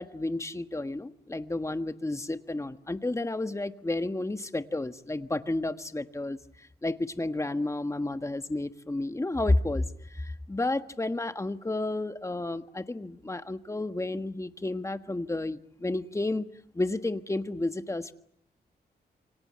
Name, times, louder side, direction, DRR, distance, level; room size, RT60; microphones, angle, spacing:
voice 1, 0.0-16.5 16.7-18.1, left 2 dB, 15° left, 10 dB, 1.5 m, -31 dB
28.0 x 24.5 x 8.7 m, 0.69 s
cardioid pair, 90°, 17 cm